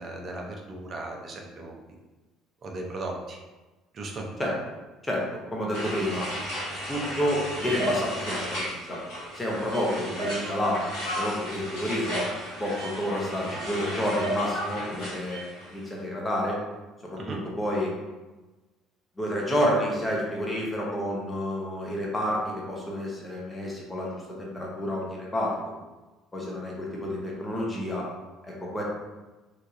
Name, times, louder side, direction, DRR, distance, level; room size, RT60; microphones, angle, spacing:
voice 1, 0.0-1.7 2.6-3.4 3.9-4.3 17.2-17.4, right 2 dB, 40° right, 1 dB, 0.5 m, -36 dB
voice 2, 5.0-6.3 6.9-9.0 9.3-12.2 12.6-15.4 15.7-16.6 17.1-17.9 19.2-25.7 26.3-28.0 28.4-28.8, equal, 15° left, -3 dB, 0.9 m, -29 dB
sound 1, 5.7-15.8, equal, 70° left, 1.4 m, -34 dB
3.1 x 2.3 x 2.5 m, 1.1 s
figure-of-eight pair, 55°, 0 cm